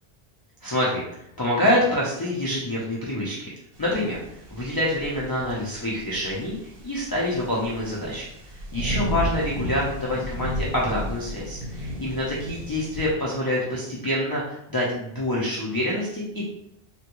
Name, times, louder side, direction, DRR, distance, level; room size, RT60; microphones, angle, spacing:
voice 1, 0.6-1.0 1.4-3.5 3.8-4.2 4.5-6.5 6.8-16.4, left 1 dB, 30° left, -6 dB, 0.5 m, -26 dB
sound 1, 3.7-13.1, equal, 65° right, 0.9 m, -34 dB
3.4 x 2.2 x 2.9 m, 0.76 s
omnidirectional pair, 1.1 m